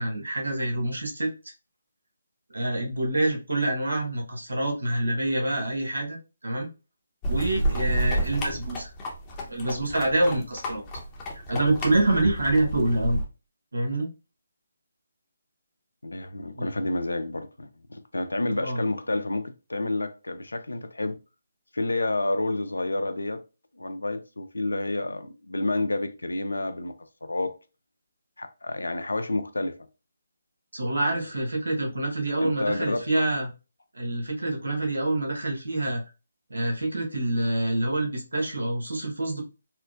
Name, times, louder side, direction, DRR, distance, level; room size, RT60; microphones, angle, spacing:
voice 1, 0.0-1.3 2.5-6.2 6.4-6.7 7.3-8.9 9.5-10.8 11.5-13.2 13.7-14.1 16.5-16.7 18.6-18.8 30.7-33.5 33.9-36.0 36.5-39.4, right 1 dB, 80° right, 1.1 m, -26 dB
sound 1, 7.2-13.2, right 1 dB, 20° left, 0.8 m, -30 dB
voice 2, 16.0-21.1 21.7-23.4 23.7-26.9 27.2-27.5 28.4-29.7 31.0-31.2 32.4-33.0, left 2 dB, 80° left, 0.5 m, -29 dB
4.3 x 2.1 x 2.4 m
figure-of-eight pair, 150°, 0 cm